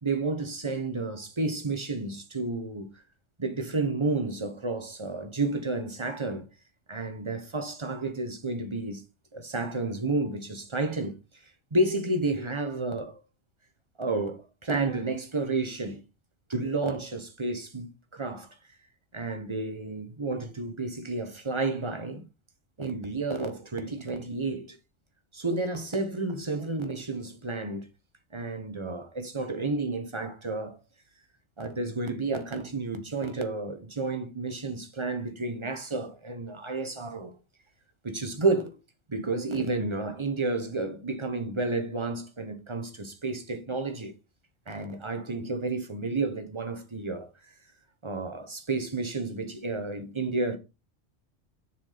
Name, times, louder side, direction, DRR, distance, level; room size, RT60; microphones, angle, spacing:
voice 1, 0.0-2.9 3.4-6.4 6.9-9.0 9.3-11.2 11.4-13.2 14.0-16.0 16.5-18.5 19.1-22.3 22.8-24.8 25.3-27.9 28.3-30.8 31.6-37.3 38.0-38.7 39.1-44.1 44.7-47.3 48.0-50.6, right 3 dB, 25° right, 1.0 m, -31 dB
7.0 x 4.4 x 5.0 m
omnidirectional pair, 1.3 m